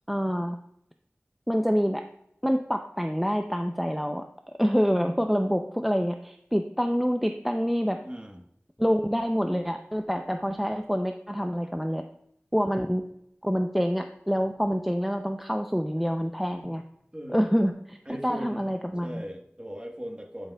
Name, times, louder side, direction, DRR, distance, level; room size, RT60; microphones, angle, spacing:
voice 1, 0.1-0.6 1.5-2.0 2.4-4.2 4.6-8.0 8.8-12.0 12.5-13.0 13.4-16.8 17.3-18.0 18.2-19.2, equal, 5° right, 5 dB, 0.5 m, -26 dB
voice 2, 8.0-8.4 16.6-16.7 17.1-17.4 18.0-18.7 19.0-20.5, equal, 20° right, 2 dB, 1.3 m, -39 dB
11.5 x 6.6 x 2.3 m, 0.73 s
wide cardioid pair, 45°, 4 cm